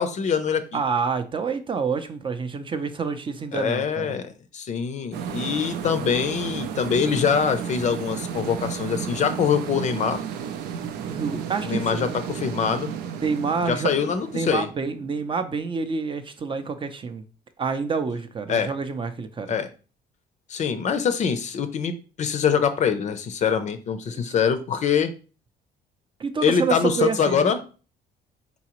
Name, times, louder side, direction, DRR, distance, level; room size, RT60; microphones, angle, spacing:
voice 1, 0.0-0.8 3.5-10.2 11.6-12.9 13.6-14.7 18.5-18.7 19.5-19.7 20.5-25.1 26.4-27.6, left 7 dB, 45° left, 0.5 m, -24 dB
voice 2, 0.7-4.1 11.0-12.1 13.2-13.9 14.3-17.2 17.6-19.5 24.1-24.4 26.2-27.5, right 5 dB, 30° right, 0.5 m, -28 dB
sound 1, 5.1-15.7, right 8 dB, 80° right, 0.5 m, -33 dB
4.0 x 3.7 x 2.9 m
cardioid pair, 110°, 17 cm